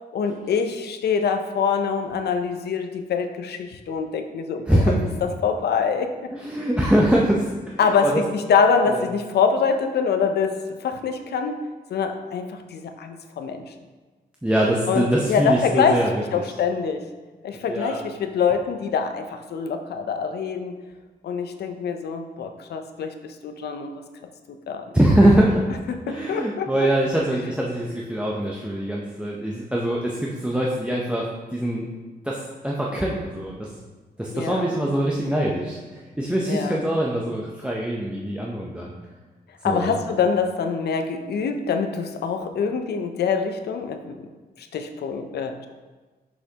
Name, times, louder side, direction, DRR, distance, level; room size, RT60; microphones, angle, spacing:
voice 1, 0.1-6.1 7.8-11.6 11.9-13.7 14.9-17.1 17.4-20.8 21.2-24.0 24.5-24.8 25.9-26.7 34.3-34.7 36.5-36.8 39.6-44.3 44.6-45.7, left 5 dB, 85° left, 7 dB, 0.5 m, -25 dB
voice 2, 4.7-5.0 6.3-8.2 8.9-9.0 14.4-16.4 17.7-18.0 24.9-25.6 26.1-31.9 32.2-33.7 34.2-38.9 39.6-40.0, right 1 dB, 5° right, -3 dB, 0.6 m, -23 dB
6.3 x 5.6 x 2.8 m, 1.3 s
cardioid pair, 95°, 17 cm